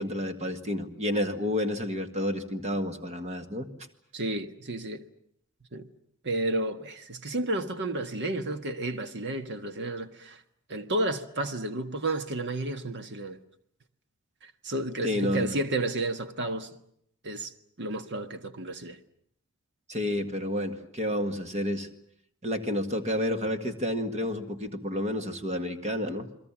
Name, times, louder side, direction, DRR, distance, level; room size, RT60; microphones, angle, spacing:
voice 1, 0.0-3.7 15.0-15.5 19.9-21.9 22.4-26.3, left 1 dB, 30° right, 2.0 m, -30 dB
voice 2, 4.1-5.0 5.7-5.9 6.2-10.4 10.7-13.4 14.4-16.7 17.2-19.0, right 2 dB, 55° right, 1.6 m, -32 dB
29.5 x 22.0 x 7.5 m
head